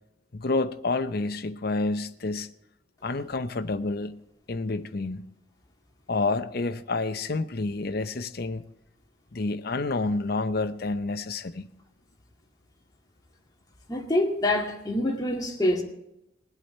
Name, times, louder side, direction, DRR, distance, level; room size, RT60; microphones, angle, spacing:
voice 1, 0.3-2.5 3.0-4.2 4.5-5.2 6.1-8.6 9.3-11.6, left 3 dB, 55° left, 0.7 m, -29 dB
voice 2, 13.9-15.8, left 1 dB, 20° left, 2.2 m, -25 dB
21.0 x 8.3 x 4.4 m
head